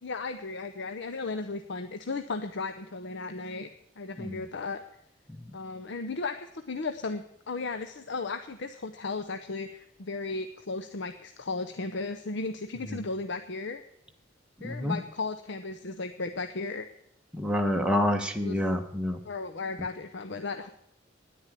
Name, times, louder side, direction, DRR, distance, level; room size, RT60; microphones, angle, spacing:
voice 1, 0.0-3.7 4.0-4.8 5.5-13.8 14.6-16.9 18.4-18.6 19.2-20.7, left 3 dB, 65° left, 8 dB, 0.7 m, -35 dB
voice 2, 14.6-15.0 17.3-19.2, left 1 dB, 5° right, 2 dB, 1.3 m, -28 dB
9.9 x 9.9 x 9.8 m, 0.73 s
head